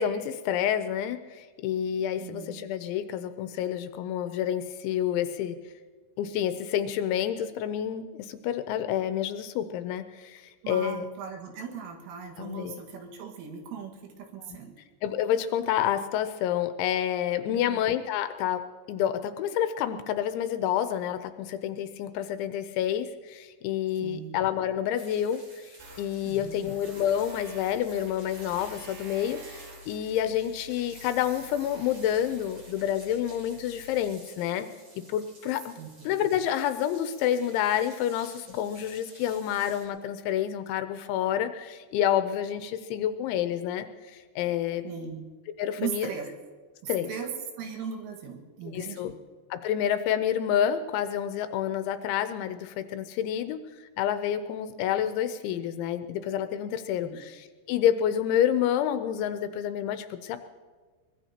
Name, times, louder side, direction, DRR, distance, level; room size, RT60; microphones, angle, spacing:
voice 1, 0.0-5.6 6.2-11.1 12.4-12.8 14.5-14.6 15.0-25.7 26.0-34.7 35.1-35.7 36.1-43.9 44.4-44.8 45.6-46.1 46.9-47.1 48.7-49.1 49.5-53.6 54.0-60.4, left 10 dB, 80° left, 10 dB, 2.8 m, -28 dB
voice 2, 2.2-2.7 10.6-14.7 17.5-17.8 24.0-24.4 26.2-26.7 35.8-36.1 44.8-45.3 45.8-46.3 46.8-49.2 57.0-57.2, right 7 dB, 85° right, 1 dB, 4.3 m, -38 dB
sound 1, 25.0-39.8, right 2 dB, 30° right, 3.5 m, -53 dB
Tools, 25.8-34.0, right 1 dB, 60° right, 4.1 m, -48 dB
23.0 x 20.5 x 2.9 m, 1.5 s
omnidirectional pair, 5.6 m